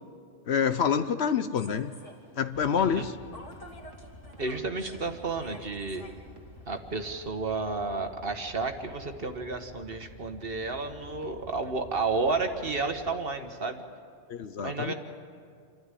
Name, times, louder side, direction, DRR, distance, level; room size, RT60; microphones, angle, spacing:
voice 1, 0.5-1.9 2.4-3.2 14.3-14.9, left 7 dB, 60° left, 11 dB, 0.9 m, -27 dB
Human voice / Subway metro underground, 1.6-7.3, equal, 25° left, 2.7 m, -50 dB
sound 1, 2.6-13.1, left 1 dB, 80° right, 1.9 m, -49 dB
voice 2, 2.7-3.1 4.4-6.1 6.7-13.8 14.6-14.9, right 3 dB, 50° right, 6 dB, 1.5 m, -31 dB
27.0 x 13.0 x 9.8 m, 2.2 s
omnidirectional pair, 1.3 m